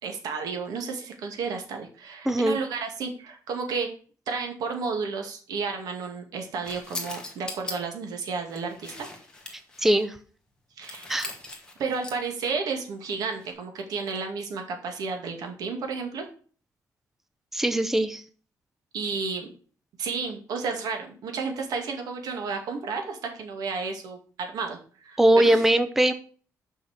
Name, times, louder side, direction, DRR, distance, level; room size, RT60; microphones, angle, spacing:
voice 1, 0.0-3.9 4.3-9.1 10.8-11.1 11.8-16.2 18.9-19.5 20.0-25.6, right 5 dB, 90° right, 4 dB, 2.3 m, -32 dB
voice 2, 2.3-2.6 9.8-10.1 11.1-11.3 17.5-18.2 25.2-26.1, right 1 dB, 5° right, 10 dB, 0.7 m, -21 dB
sound 1, 6.6-7.7 8.4-10.0 10.8-12.3 13.3-13.5, left 2 dB, 10° left, 1.9 m, -40 dB
6.6 x 5.9 x 7.3 m, 0.42 s
cardioid pair, 155°, 6 cm